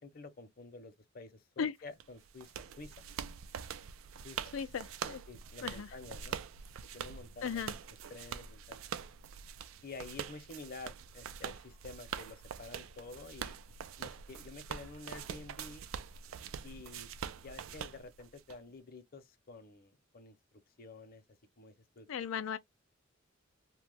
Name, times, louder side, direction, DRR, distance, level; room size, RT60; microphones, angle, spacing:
voice 1, 0.0-2.9 4.2-4.5 5.3-6.4 6.9-7.6 8.1-8.8 9.8-13.5 14.0-15.8 16.6-17.1 17.4-20.4 20.8-21.2 21.6-22.1, left 3 dB, 50° left, 0.7 m, -50 dB
sound 1, 2.0-18.6, right 8 dB, 75° right, 0.3 m, -44 dB
voice 2, 4.5-5.2 5.6-5.9 7.4-7.7 22.1-22.6, left 7 dB, 75° left, 0.4 m, -36 dB
2.9 x 2.1 x 3.3 m
head